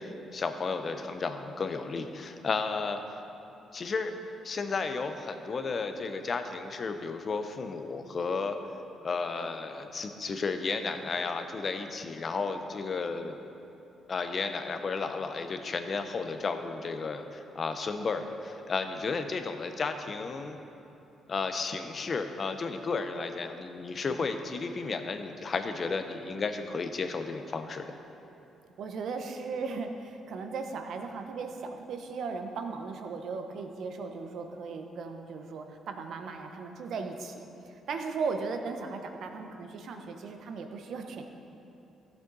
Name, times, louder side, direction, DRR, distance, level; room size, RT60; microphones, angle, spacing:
voice 1, 0.0-3.0 3.7-4.2 4.4-8.6 9.0-13.4 14.1-20.6 21.3-27.9, left 4 dB, 45° left, 7 dB, 0.7 m, -33 dB
voice 2, 28.8-41.2, right 4 dB, 70° right, 5 dB, 0.9 m, -37 dB
14.0 x 7.2 x 4.0 m, 2.9 s
cardioid pair, 90°, 0 cm